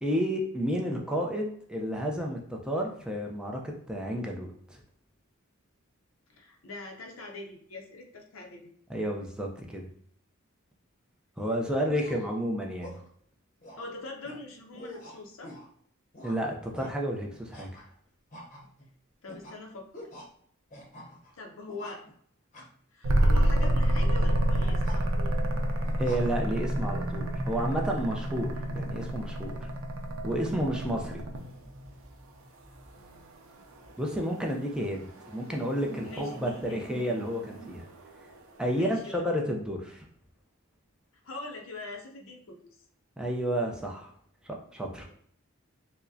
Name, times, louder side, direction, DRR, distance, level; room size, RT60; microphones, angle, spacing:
voice 1, 0.0-4.8 8.9-9.9 11.4-12.9 16.2-17.7 26.0-29.7 30.2-31.2 34.0-37.8 38.6-40.0 43.2-44.1 44.7-45.1, equal, 5° right, 0 dB, 0.5 m, -31 dB
voice 2, 6.3-8.7 11.7-12.0 13.8-15.6 19.2-20.1 21.3-22.0 22.9-25.3 33.0-33.6 36.0-36.9 38.7-39.3 41.2-42.8 45.1-45.2, left 2 dB, 70° left, 2 dB, 0.6 m, -43 dB
sound 1, 12.0-12.3 12.8-13.1 13.6-13.9 14.2-14.4 14.7-15.7 16.1-16.4 16.7-16.9 17.5-17.9 18.3-18.9 19.3-19.6 19.9-20.3 20.7-21.3 21.7-22.1 22.5-22.7 23.2-23.7 24.5-25.0 25.8-26.3, equal, 35° left, 0.8 m, -46 dB
sound 2, 23.0-31.6 33.8-38.4, right 1 dB, 80° right, 0.5 m, -29 dB
sound 3, 23.5-33.3 33.6-33.9 35.3-37.8, equal, 30° right, 1.4 m, -42 dB
4.6 x 2.1 x 2.6 m, 0.63 s
head